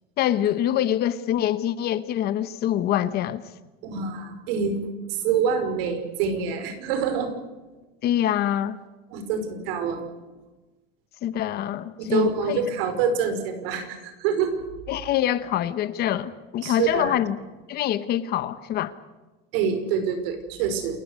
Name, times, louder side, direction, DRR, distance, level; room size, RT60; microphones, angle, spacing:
voice 1, 0.2-3.4 8.0-8.8 11.2-12.6 14.9-17.4 17.7-18.9, left 11 dB, 30° left, 0.9 m, -25 dB
voice 2, 3.8-7.3 9.1-10.0 12.0-14.6 16.6-17.2 19.5-21.0, right 6 dB, 70° right, 5.2 m, -26 dB
28.5 x 14.5 x 9.6 m
cardioid pair, 175°, 31 cm